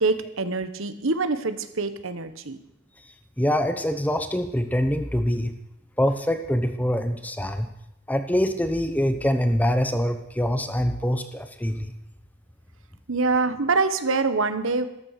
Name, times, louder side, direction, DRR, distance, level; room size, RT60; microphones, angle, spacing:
voice 1, 0.0-2.6 13.1-14.9, right 3 dB, 60° right, 11 dB, 1.1 m, -25 dB
voice 2, 3.4-5.5 6.0-7.7 8.1-11.9, equal, 5° left, 8 dB, 0.9 m, -24 dB
14.0 x 13.5 x 6.6 m, 0.86 s
head